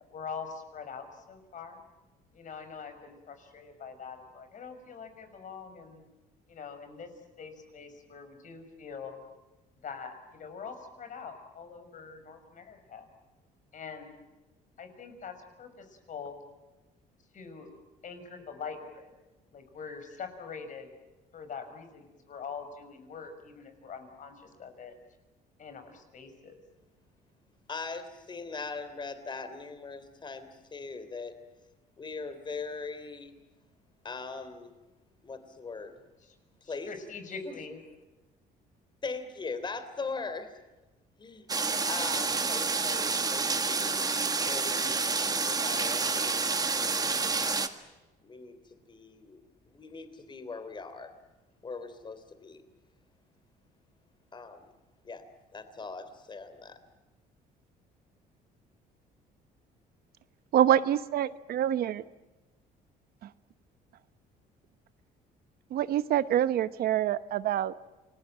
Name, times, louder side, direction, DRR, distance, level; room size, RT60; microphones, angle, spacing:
voice 1, 0.0-1.8 2.3-6.0 6.5-7.1 7.4-9.2 9.8-13.1 13.7-14.2 14.8-16.4 17.3-17.7 18.0-19.1 19.5-20.9 21.3-24.9 25.6-26.6 36.2-36.3 36.6-37.8, left 5 dB, 50° left, 8 dB, 5.8 m, -43 dB
voice 2, 27.7-31.4 32.0-33.3 34.0-34.7 35.2-35.9 36.7-36.9 37.4-37.5 39.0-40.6 41.2-41.5 41.9-44.0 44.4-47.6 48.2-48.6 48.9-49.4 49.7-51.1 51.6-52.6 54.3-54.7 55.0-55.2 55.5-56.8, left 4 dB, 25° left, 11 dB, 3.3 m, -40 dB
sound 1, 41.5-47.7, right 4 dB, 20° right, 1.8 m, -29 dB
voice 3, 60.5-62.0 65.7-67.7, right 11 dB, 65° right, 14 dB, 0.9 m, -26 dB
28.5 x 21.0 x 8.9 m, 1.1 s
cardioid pair, 110°, 17 cm